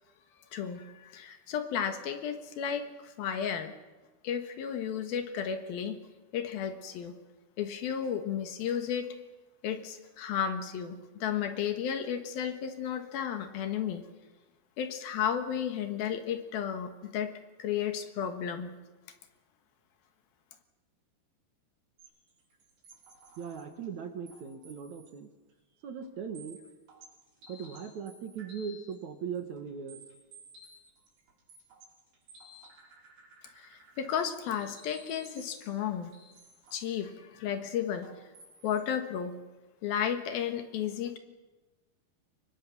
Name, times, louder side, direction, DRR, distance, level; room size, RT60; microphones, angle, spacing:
voice 1, 0.5-3.7 4.2-6.0 6.3-7.2 7.6-9.1 9.6-14.1 14.8-18.7 33.6-36.1 36.7-38.1 38.6-39.4 39.8-41.2, left 8 dB, 70° left, 7 dB, 3.2 m, -33 dB
sound 1, 22.0-23.9 24.3-25.2 25.5-25.6 26.0-26.1 26.4-29.0 29.4-37.0 38.0-38.9, right 1 dB, 85° right, 8.1 m, -55 dB
voice 2, 23.4-25.3 25.8-26.6 27.5-30.0, right 7 dB, 60° right, 6 dB, 2.3 m, -39 dB
24.5 x 22.0 x 7.3 m, 1.2 s
omnidirectional pair, 4.6 m